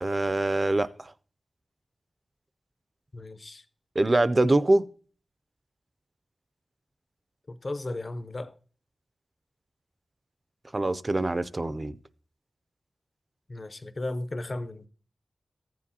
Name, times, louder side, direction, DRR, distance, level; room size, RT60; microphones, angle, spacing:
voice 1, 0.0-1.1 4.0-4.8 10.7-12.0, right 2 dB, 35° right, 0.4 m, -24 dB
voice 2, 3.1-3.6 7.5-8.5 13.5-14.9, left 2 dB, 45° left, 0.5 m, -35 dB
15.0 x 7.5 x 2.8 m
wide cardioid pair, 95°, 0 cm